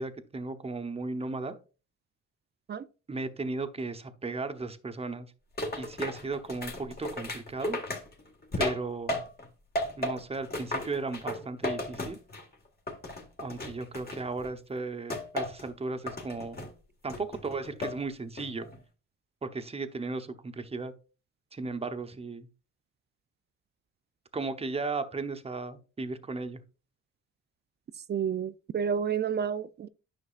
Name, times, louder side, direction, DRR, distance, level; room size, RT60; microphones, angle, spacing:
voice 1, 0.0-1.5 3.1-5.3 5.8-7.8 8.6-9.2 10.0-12.2 13.4-16.6 17.0-18.7 19.4-20.9 21.5-22.5 24.3-26.6, right 3 dB, 20° right, 0.9 m, -35 dB
sound 1, 5.6-9.5 9.8-12.5 12.9-14.5 15.1-15.7 16.1-16.7 17.1-18.0 18.4-18.8, left 1 dB, 30° left, 1.8 m, -35 dB
voice 2, 28.1-29.9, right 7 dB, 35° right, 0.4 m, -30 dB
9.8 x 5.9 x 2.4 m
cardioid pair, 90°, 30 cm